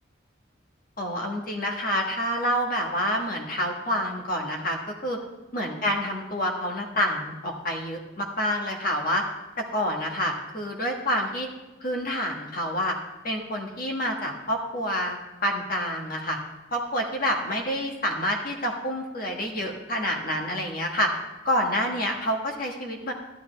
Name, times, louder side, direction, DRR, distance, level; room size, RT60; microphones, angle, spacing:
voice 1, 1.0-5.2 5.5-9.2 9.6-11.5 11.8-12.9 13.2-16.4 16.7-21.1 21.4-23.1, equal, 45° left, 1 dB, 1.4 m, -28 dB
12.5 x 11.0 x 3.4 m, 1.1 s
head